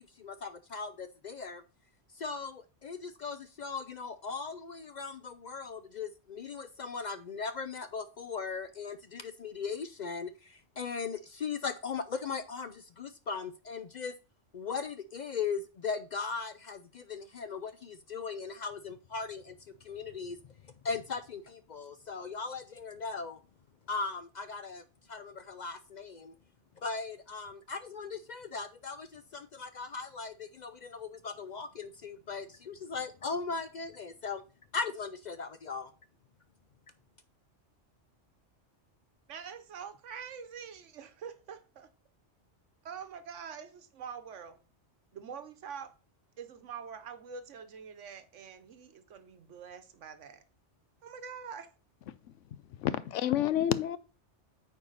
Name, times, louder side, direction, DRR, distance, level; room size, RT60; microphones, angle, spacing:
voice 1, 0.0-1.6 2.1-14.1 14.5-19.6 19.8-20.4 20.8-23.4 23.9-26.3 26.8-34.4 34.7-35.9, left 5 dB, 60° left, 0.4 m, -38 dB
voice 2, 39.3-41.9 42.8-44.6 45.1-45.9 46.4-50.4 51.0-51.7, right 7 dB, 90° right, 1.2 m, -45 dB
voice 3, 52.8-54.0, left 11 dB, 90° left, 1.0 m, -28 dB
9.0 x 4.7 x 3.9 m
omnidirectional pair, 1.2 m